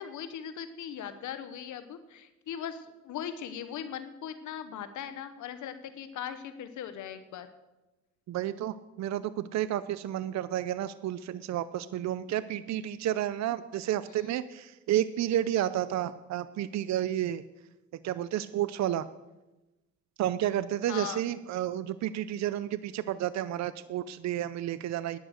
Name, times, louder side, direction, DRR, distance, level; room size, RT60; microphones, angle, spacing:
voice 1, 0.0-7.5 20.9-21.2, left 9 dB, 75° left, 10 dB, 1.0 m, -39 dB
voice 2, 8.3-17.4 18.0-19.1 20.2-25.2, right 12 dB, 65° right, 15 dB, 0.6 m, -31 dB
10.5 x 10.0 x 6.4 m, 1.0 s
cardioid pair, 90°, 30 cm